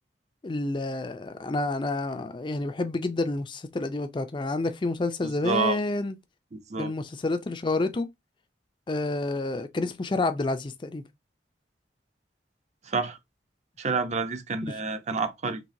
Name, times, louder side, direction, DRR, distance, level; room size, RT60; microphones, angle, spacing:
voice 1, 0.4-6.1 6.8-8.1 8.9-11.0 14.6-14.7, left 2 dB, 30° left, 0.4 m, -29 dB
voice 2, 5.4-5.8 6.5-6.9 12.9-13.2 13.8-15.6, right 4 dB, 40° right, 0.6 m, -28 dB
4.5 x 3.3 x 2.6 m
head